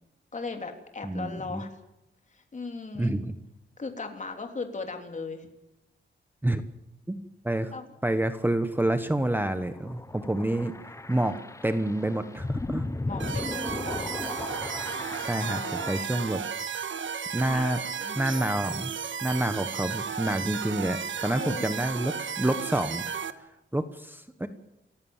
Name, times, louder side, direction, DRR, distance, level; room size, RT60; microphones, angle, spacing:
voice 1, 0.3-1.8 2.3-3.1 3.8-5.5 7.7-7.9 11.1-11.3 13.0-14.2 15.4-16.1 17.5-18.1 21.4-21.8, left 4 dB, 40° left, 4 dB, 3.4 m, -38 dB
voice 2, 1.0-1.6 3.0-3.3 6.4-6.6 7.1-7.7 8.0-10.7 11.1-11.4 11.6-12.8 15.3-16.4 17.3-17.8 18.1-18.9 19.2-23.0 23.7-24.5, right 1 dB, 10° right, 9 dB, 1.1 m, -28 dB
sound 1, 9.6-16.0, left 2 dB, 15° left, 0.8 m, -36 dB
sound 2, 13.2-23.3, right 7 dB, 70° right, 1.5 m, -34 dB
28.5 x 15.0 x 7.3 m, 0.90 s
wide cardioid pair, 140°, 20 cm